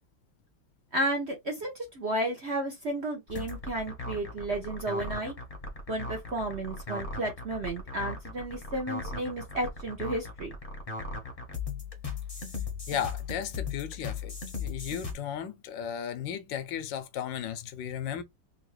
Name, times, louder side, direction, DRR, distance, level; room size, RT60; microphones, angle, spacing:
voice 1, 0.9-5.3 5.9-10.5, right 1 dB, 50° right, 0.9 m, -32 dB
sound 1, 3.3-15.1, left 4 dB, 25° left, 0.8 m, -37 dB
voice 2, 12.9-18.2, left 9 dB, 75° left, 1.3 m, -35 dB
3.8 x 2.7 x 3.0 m
omnidirectional pair, 2.1 m